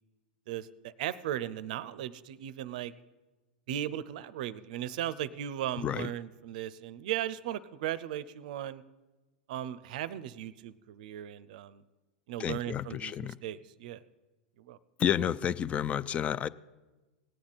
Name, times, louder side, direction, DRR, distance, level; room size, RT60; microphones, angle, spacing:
voice 1, 0.5-2.9 3.7-8.8 9.5-11.8 12.3-14.0 14.7-14.8, right 11 dB, 60° right, 16 dB, 0.5 m, -37 dB
voice 2, 12.4-13.3 15.0-16.5, left 9 dB, 25° left, 19 dB, 0.4 m, -30 dB
18.5 x 8.6 x 4.1 m, 1.2 s
hypercardioid pair, 100°, 5 cm